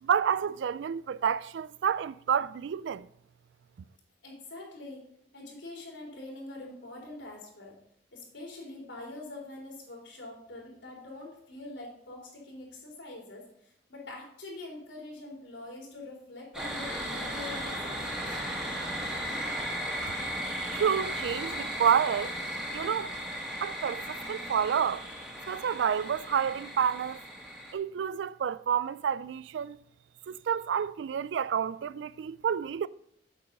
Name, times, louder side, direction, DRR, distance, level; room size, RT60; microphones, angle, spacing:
voice 1, 0.0-3.1 20.7-22.3 22.7-23.1 23.6-25.1 25.5-27.2 27.7-29.8 30.3-32.9, right 8 dB, 75° right, 0.3 m, -29 dB
voice 2, 4.2-5.0 5.3-7.8 8.1-18.4, left 2 dB, 85° left, 3.7 m, -44 dB
sound 1, 16.5-27.7, equal, 5° right, 1.8 m, -36 dB
8.5 x 7.0 x 5.3 m
head